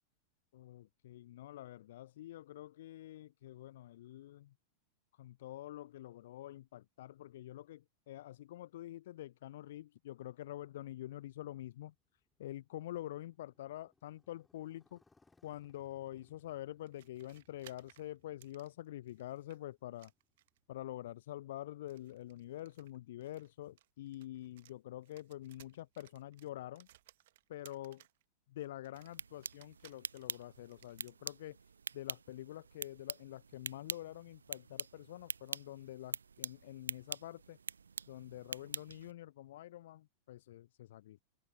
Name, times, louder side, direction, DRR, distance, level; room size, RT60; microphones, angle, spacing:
voice 1, 0.5-4.5 5.1-11.9 12.4-15.0 15.4-20.1 20.7-26.9 27.5-28.0 28.5-31.6 31.9-37.6 38.1-41.2, left 14 dB, 55° left, 0.6 m, -47 dB
Motorcycle, 11.7-20.9, left 3 dB, 10° left, 2.9 m, -74 dB
sound 1, 16.8-19.6 20.0-20.7 21.8-24.8 25.0-28.2 28.6-31.2, right 15 dB, 55° right, 1.0 m, -63 dB
sound 2, 28.9-39.1, right 6 dB, 75° right, 0.5 m, -45 dB
open air
figure-of-eight pair, 90°, 0 cm